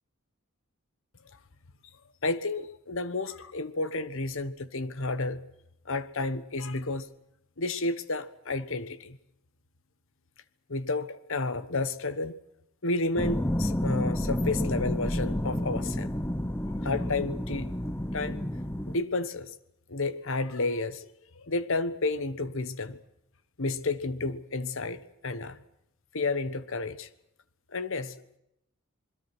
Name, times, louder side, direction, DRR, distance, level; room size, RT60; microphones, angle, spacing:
voice 1, 2.2-5.4 5.8-7.1 7.6-9.2 10.7-12.4 12.8-16.1 16.8-17.8 18.1-18.4 18.9-19.5 19.9-21.1 21.3-23.0 23.6-25.6 26.1-27.1 27.7-28.4, left 3 dB, 65° left, 1.3 m, -31 dB
sound 1, 13.2-19.0, left 1 dB, 10° left, 0.8 m, -30 dB
27.0 x 21.5 x 6.2 m
head